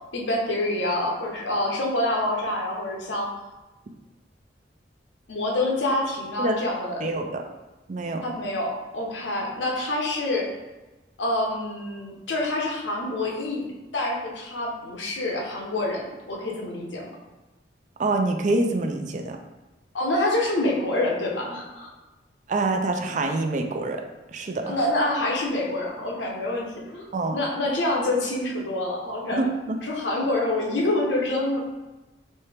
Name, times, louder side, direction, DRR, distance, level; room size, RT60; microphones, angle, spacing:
voice 1, 0.1-3.3 5.3-7.1 8.2-10.5 11.2-13.6 13.9-17.0 19.9-21.9 24.6-27.1 27.3-29.5 29.8-31.6, left 1 dB, 85° left, -2 dB, 0.9 m, -26 dB
voice 2, 7.0-7.5 7.9-8.2 18.0-19.4 22.5-24.0 24.3-24.8 27.1-27.4 29.3-29.8, right 2 dB, 45° right, 4 dB, 0.4 m, -26 dB
4.3 x 2.8 x 3.4 m, 1.1 s
head